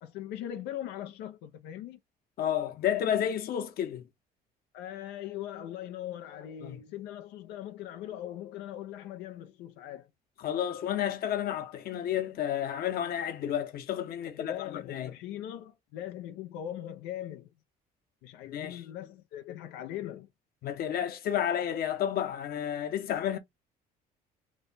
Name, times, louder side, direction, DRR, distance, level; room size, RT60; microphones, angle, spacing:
voice 1, 0.0-2.0 4.7-10.1 14.2-17.5 18.2-20.3, left 11 dB, 90° left, 0.5 m, -40 dB
voice 2, 2.4-4.1 6.6-6.8 10.4-15.1 18.5-18.8 20.6-23.4, left 10 dB, 60° left, 0.9 m, -31 dB
3.1 x 2.1 x 3.9 m
cardioid pair, 110°, 17 cm